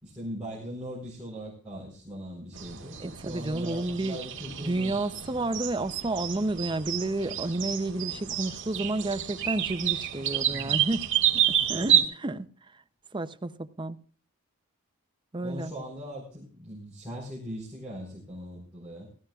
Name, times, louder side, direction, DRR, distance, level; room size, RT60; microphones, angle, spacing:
voice 1, 0.0-5.0 10.5-10.8 11.6-12.0 15.4-19.1, equal, 5° right, 4.2 m, -40 dB
sound 1, 2.5-12.0, right 10 dB, 55° right, 1.7 m, -29 dB
voice 2, 3.0-4.2 4.6-12.5 13.1-14.0 15.3-15.7, right 2 dB, 20° right, 0.6 m, -31 dB
17.0 x 14.0 x 2.4 m
head